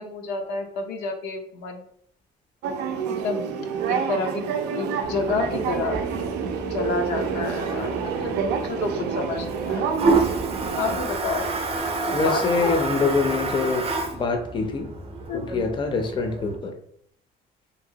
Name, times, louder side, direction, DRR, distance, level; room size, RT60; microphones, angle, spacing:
voice 1, 0.0-1.9 3.1-3.5 3.9-4.4 4.7-6.0 6.7-10.0 10.8-11.5 12.1-12.8 15.3-15.6, left 3 dB, 90° left, 3 dB, 0.6 m, -29 dB
sound 1, 2.6-11.0, right 6 dB, 90° right, 0.4 m, -28 dB
Toilet flush, 5.0-16.6, right 3 dB, 35° right, 0.5 m, -29 dB
voice 2, 12.1-13.8 14.1-14.9 15.3-16.7, left 4 dB, 30° left, 4 dB, 0.4 m, -24 dB
2.9 x 2.7 x 2.7 m, 0.67 s
cardioid pair, 110°, 17 cm